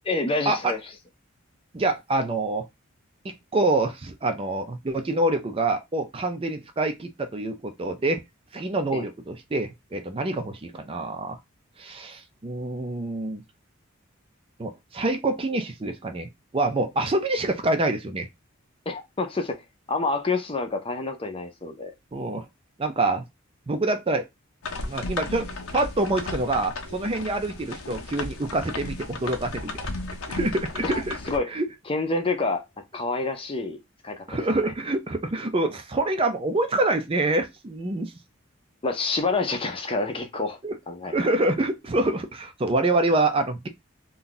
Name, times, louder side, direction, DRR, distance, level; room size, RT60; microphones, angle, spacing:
voice 1, 0.1-0.8 8.9-9.1 18.9-19.6 19.9-21.9 30.8-31.5 31.9-32.6 32.9-33.8 34.0-34.2 38.8-40.6 40.9-41.2, left 3 dB, 25° left, 0.6 m, -27 dB
voice 2, 1.7-2.7 3.2-8.2 8.5-11.4 11.8-13.4 14.6-18.3 22.1-22.5 22.8-23.2 23.7-24.3 24.7-25.5 25.7-29.7 30.3-31.2 31.5-31.7 34.3-38.1 40.6-40.8 41.1-43.7, right 2 dB, 25° right, 0.4 m, -26 dB
sound 1, 24.6-31.4, left 3 dB, 85° left, 0.7 m, -35 dB
2.7 x 2.3 x 3.8 m
head